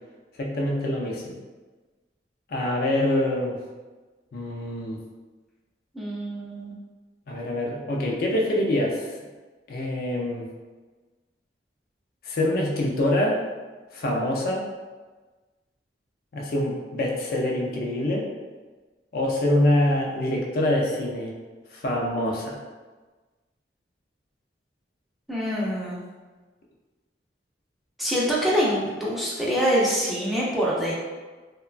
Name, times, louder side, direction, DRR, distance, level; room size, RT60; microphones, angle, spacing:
voice 1, 0.4-1.4 2.5-3.6 4.3-5.0 7.3-9.1 9.7-10.5 12.2-13.4 13.9-14.7 16.3-18.3 19.1-21.3 21.7-22.6, left 1 dB, 55° left, -1 dB, 0.4 m, -25 dB
voice 2, 5.9-6.8 25.3-26.0 28.0-30.9, equal, ahead, -7 dB, 0.4 m, -25 dB
2.9 x 2.1 x 2.4 m, 1.3 s
head